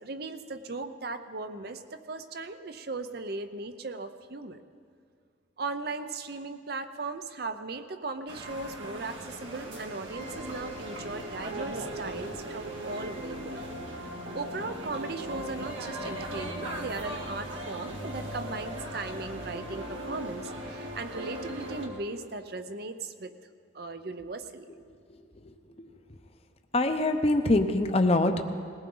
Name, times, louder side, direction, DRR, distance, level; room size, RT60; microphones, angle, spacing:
voice 1, 0.0-4.6 5.6-13.6 14.0-23.3 23.7-24.7, right 3 dB, 55° right, 9 dB, 0.7 m, -38 dB
sound 1, 8.3-21.9, right 1 dB, 90° right, 2.1 m, -38 dB
voice 2, 26.7-28.4, left 2 dB, 30° left, 7 dB, 0.7 m, -23 dB
20.5 x 18.0 x 3.9 m, 2.2 s
head